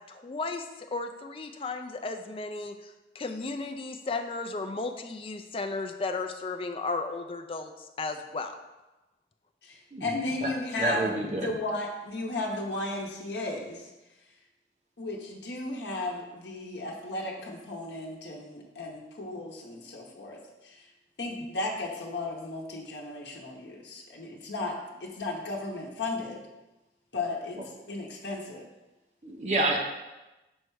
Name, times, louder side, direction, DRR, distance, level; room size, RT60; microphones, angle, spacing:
voice 1, 0.1-7.7 8.0-8.5, left 3 dB, 30° left, 7 dB, 0.4 m, -34 dB
voice 2, 9.6-11.1 11.4-13.9 15.0-20.9 21.2-26.4 27.1-27.6 27.9-28.7, left 2 dB, 80° left, -1 dB, 0.8 m, -35 dB
voice 3, 10.8-11.5 29.2-29.8, right 2 dB, 40° right, 1 dB, 0.8 m, -28 dB
6.3 x 3.3 x 4.7 m, 1.0 s
head